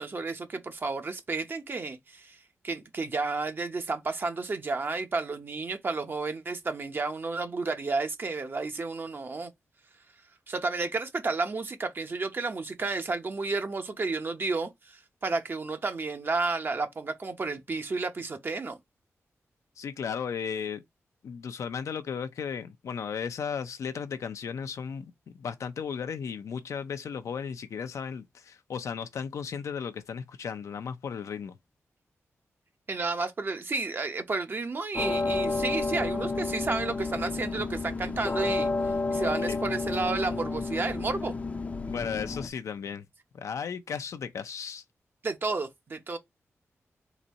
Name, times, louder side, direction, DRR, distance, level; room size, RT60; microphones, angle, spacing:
voice 1, 0.0-2.4 2.6-9.5 10.5-18.8 32.9-41.3 45.2-46.2, right 3 dB, 45° right, 0.8 m, -31 dB
voice 2, 19.8-20.8 21.2-25.1 25.3-31.5 39.4-39.6 41.9-43.0 43.3-44.8, left 7 dB, 85° left, 0.5 m, -35 dB
sound 1, 34.9-42.5, left 3 dB, 30° left, 0.5 m, -31 dB
4.0 x 2.6 x 4.1 m
wide cardioid pair, 105°, 5 cm